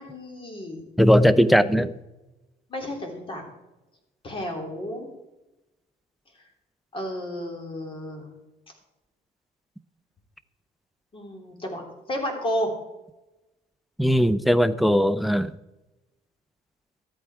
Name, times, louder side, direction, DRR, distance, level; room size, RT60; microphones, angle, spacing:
voice 1, 0.0-0.8 2.7-3.4 4.2-5.1 6.9-8.3 11.1-12.7, equal, 30° left, 2 dB, 3.2 m, -32 dB
voice 2, 1.0-1.9 14.0-15.5, equal, ahead, 15 dB, 0.5 m, -19 dB
13.5 x 8.7 x 4.7 m, 1.0 s
cardioid pair, 110°, 17 cm